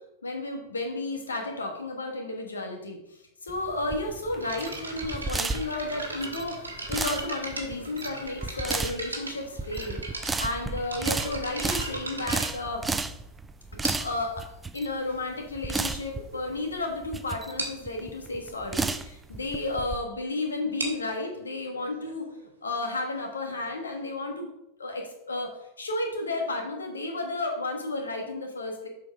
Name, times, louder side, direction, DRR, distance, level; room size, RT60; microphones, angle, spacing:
voice 1, 0.2-3.0 3.4-12.8 13.7-14.4 14.7-22.3 22.6-24.5 24.8-28.9, left 2 dB, 75° left, 3 dB, 1.4 m, -32 dB
sound 1, 3.5-20.0, right 3 dB, 10° right, 0.4 m, -33 dB
sound 2, 4.4-13.2 13.8-14.3 15.1-15.2 15.8-15.9 16.2-16.4 16.7-16.8 17.1-17.2 17.6-17.9 20.6-24.0, right 2 dB, 80° right, 1.5 m, -38 dB
7.4 x 4.7 x 5.0 m, 0.82 s
figure-of-eight pair, 90°, 0 cm